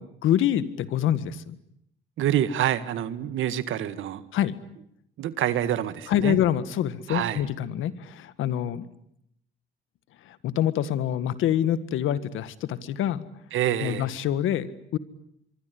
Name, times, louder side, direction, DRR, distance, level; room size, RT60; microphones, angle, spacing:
voice 1, 0.0-1.6 4.3-4.6 6.1-8.8 10.3-13.2 13.8-15.0, left 11 dB, 85° left, 1.8 m, -26 dB
voice 2, 2.2-4.2 5.2-6.4 7.1-7.4 13.5-14.1, right 11 dB, 80° right, 1.9 m, -27 dB
24.5 x 24.5 x 9.8 m
cardioid pair, 90°, 20 cm